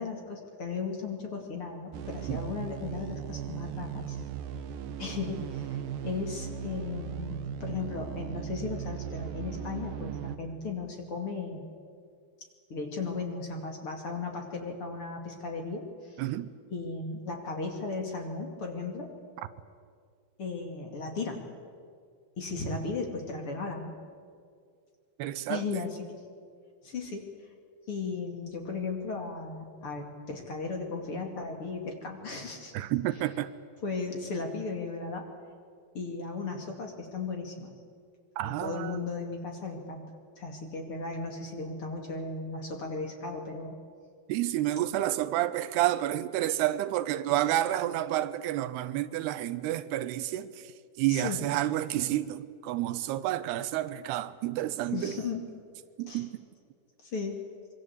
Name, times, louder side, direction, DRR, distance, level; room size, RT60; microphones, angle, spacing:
voice 1, 0.0-4.2 5.0-11.6 12.7-16.2 16.7-19.1 20.4-21.4 22.4-23.9 25.5-26.1 26.8-27.3 27.9-32.7 33.8-35.3 35.9-37.7 38.4-40.0 40.4-43.8 51.1-51.4 54.9-55.4 56.1-56.2 57.0-57.4, left 4 dB, 40° left, 2.9 m, -36 dB
sound 1, 1.9-10.4, right 8 dB, 70° right, 2.7 m, -37 dB
voice 2, 16.2-16.5 25.2-25.8 32.7-33.5 38.4-39.0 44.3-50.7 51.0-55.2 56.0-56.3, right 14 dB, 90° right, 2.9 m, -30 dB
25.0 x 24.0 x 8.2 m
omnidirectional pair, 4.6 m